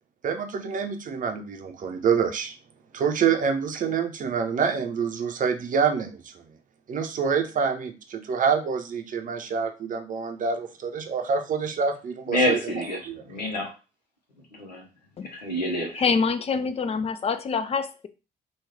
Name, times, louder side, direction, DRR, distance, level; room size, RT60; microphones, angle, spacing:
voice 1, 0.2-2.5 2.9-6.3 6.9-13.2, right 6 dB, 40° right, 6 dB, 0.6 m, -27 dB
voice 2, 12.3-13.0 13.3-13.7 14.6-14.8 15.2-16.0, left 1 dB, 90° left, 2 dB, 0.7 m, -27 dB
voice 3, 16.0-18.1, left 5 dB, 30° left, 11 dB, 0.4 m, -25 dB
3.0 x 2.3 x 3.5 m, 0.31 s
figure-of-eight pair, 45°, 21 cm